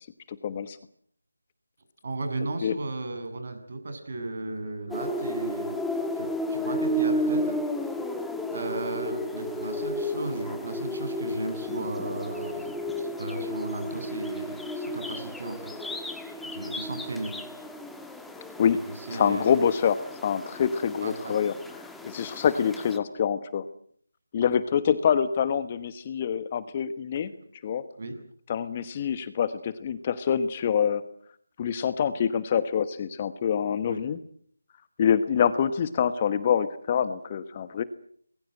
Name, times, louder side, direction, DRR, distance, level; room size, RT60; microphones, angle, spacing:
voice 1, 0.3-0.8 2.6-2.7 18.6-18.8 19.1-21.5 22.0-23.6 24.3-27.3 27.6-27.8 28.5-31.0 31.6-34.2 35.0-37.8, left 8 dB, 25° left, 13 dB, 1.2 m, -26 dB
voice 2, 2.0-5.8 6.2-7.6 8.5-12.7 13.0-16.2 16.5-17.4 18.7-19.6 21.0-21.4 28.0-28.2 33.8-34.0, right 2 dB, 45° right, 7 dB, 7.3 m, -35 dB
sound 1, 4.9-23.0, equal, ahead, 1.5 m, -33 dB
26.5 x 21.5 x 7.9 m, 0.63 s
figure-of-eight pair, 160°, 0 cm